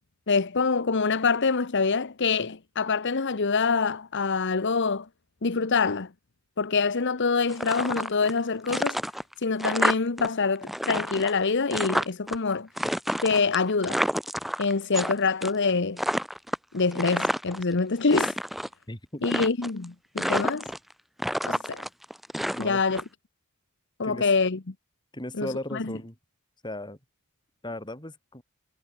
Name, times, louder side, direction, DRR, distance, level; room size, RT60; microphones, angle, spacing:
voice 1, 0.3-5.1 5.4-6.1 6.6-9.0 9.4-12.7 13.2-14.0 14.6-16.0 16.7-18.3 19.2-20.7 21.4-21.8 22.6-23.0 24.0-24.6 25.4-25.8, left 4 dB, 55° left, 1.0 m, -25 dB
sound 1, 7.5-8.4 8.7-10.3 10.5-12.4 12.8-15.1 15.4-15.7 16.0-17.6 18.0-18.7 19.2-19.8 20.2-20.9 21.2-23.0, equal, ahead, 0.7 m, -29 dB
voice 2, 18.9-19.3 22.5-22.8 24.0-24.3 25.1-26.2 26.6-27.0 27.6-28.4, left 1 dB, 20° left, 5.8 m, -36 dB
head